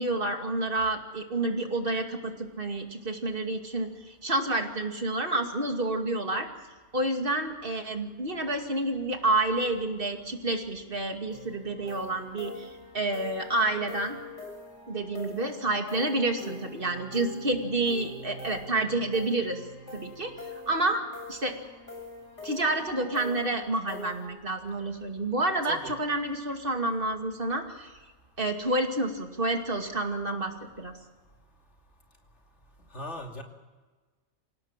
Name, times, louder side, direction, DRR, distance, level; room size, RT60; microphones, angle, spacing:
voice 1, 0.0-6.5 6.9-14.2 14.9-19.6 19.9-20.3 20.7-21.0 21.3-21.5 22.4-27.9 28.4-31.0, right 2 dB, 50° right, 4 dB, 2.7 m, -29 dB
sound 1, 11.3-24.3, left 1 dB, 90° left, 7.4 m, -44 dB
voice 2, 25.6-26.0 32.9-33.4, left 1 dB, 75° left, 2 dB, 3.2 m, -38 dB
27.0 x 17.5 x 7.5 m, 1.3 s
omnidirectional pair, 1.2 m